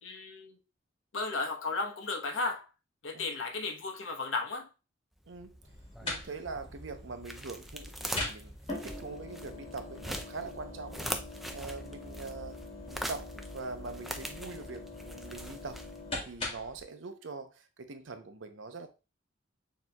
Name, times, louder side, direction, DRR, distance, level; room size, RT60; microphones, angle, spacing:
voice 1, 0.0-0.6 1.1-2.7 3.0-4.7, left 3 dB, 80° left, 0.9 m, -34 dB
sound 1, 5.2-16.3, equal, ahead, 0.4 m, -43 dB
voice 2, 5.3-5.6 6.0-8.5 8.8-11.1 11.5-12.6 12.9-15.8 16.3-18.9, right 4 dB, 80° right, 0.7 m, -43 dB
sound 2, 5.6-16.8, left 2 dB, 30° left, 1.3 m, -43 dB
6.6 x 3.0 x 2.2 m
head